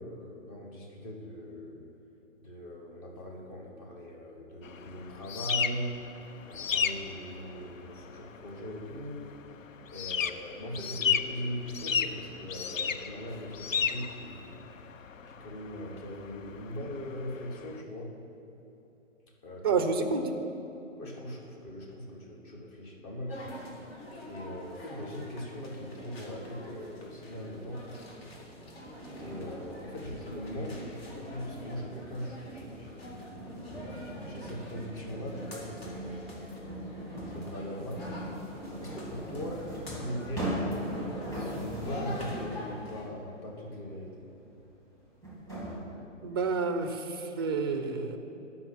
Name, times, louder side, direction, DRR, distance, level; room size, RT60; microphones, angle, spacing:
voice 1, 0.0-1.8 2.4-5.9 6.5-9.2 9.9-14.5 15.3-18.1 19.4-19.8 21.0-23.6 24.3-27.8 29.2-33.1 34.0-36.4 37.3-38.0 38.8-40.8 41.3-44.3, equal, 30° left, -1 dB, 1.7 m, -40 dB
sound 1, 4.6-17.8, left 7 dB, 85° left, 0.6 m, -34 dB
voice 2, 19.6-20.3 46.2-48.2, right 4 dB, 20° right, 8 dB, 0.4 m, -29 dB
sound 2, 23.3-43.1, equal, 50° left, 2.3 m, -46 dB
sound 3, 27.5-42.7 44.4-44.5 45.2-45.8, equal, 10° left, 2.2 m, -40 dB
10.5 x 5.6 x 6.3 m, 3.0 s
figure-of-eight pair, 130°, 38 cm